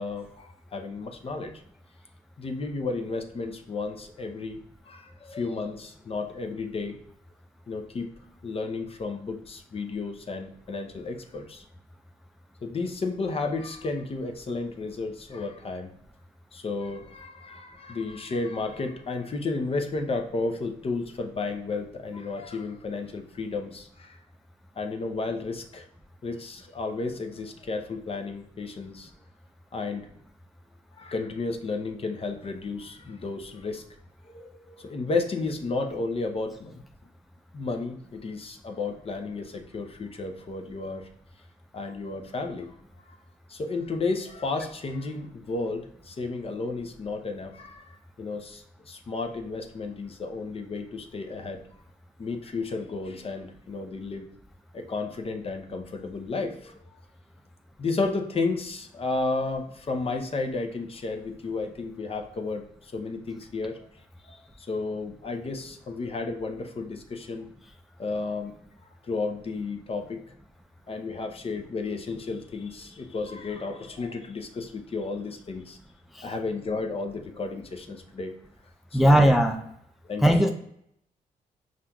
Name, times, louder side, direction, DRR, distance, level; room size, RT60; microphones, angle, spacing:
voice 1, 0.0-1.6 2.4-7.0 7.7-11.6 12.6-15.9 16.5-24.2 24.8-25.9 26.2-29.1 29.7-30.1 31.0-33.8 34.2-36.8 37.5-41.1 41.7-42.7 43.5-51.6 52.2-54.3 54.7-56.8 57.8-63.9 64.2-67.5 68.0-68.5 69.0-70.3 70.9-75.8 76.2-78.3 78.9-79.3 80.0-80.5, left 3 dB, 40° left, 5 dB, 0.6 m, -33 dB
voice 2, 78.9-79.6 80.2-80.5, equal, ahead, 3 dB, 0.4 m, -18 dB
5.6 x 2.5 x 2.2 m, 0.72 s
cardioid pair, 70°, 15 cm